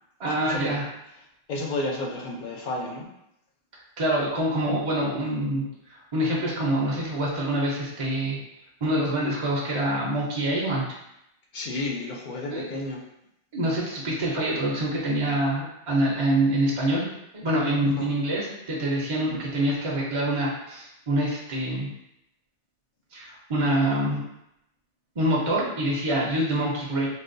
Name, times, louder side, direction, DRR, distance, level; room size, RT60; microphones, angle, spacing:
voice 1, 0.2-0.9 3.7-8.4 8.8-10.8 12.5-12.7 13.5-17.1 17.3-21.9 23.1-24.2 25.2-27.1, right 1 dB, 35° right, -4 dB, 0.5 m, -26 dB
voice 2, 1.5-3.1 11.5-13.0 18.0-18.1, left 2 dB, 60° left, -1 dB, 0.5 m, -31 dB
3.9 x 2.2 x 2.5 m, 0.83 s
omnidirectional pair, 1.2 m